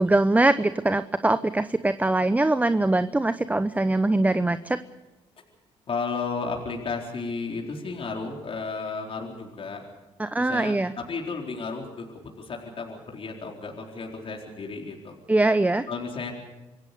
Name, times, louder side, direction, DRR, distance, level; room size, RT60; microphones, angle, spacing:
voice 1, 0.0-4.8 10.2-10.9 15.3-15.9, right 2 dB, 15° right, 13 dB, 0.8 m, -22 dB
voice 2, 5.9-9.8 10.4-15.2 15.9-16.3, left 4 dB, 50° left, 1 dB, 4.2 m, -33 dB
27.0 x 16.5 x 6.9 m, 1.1 s
supercardioid pair, 70°, 12 cm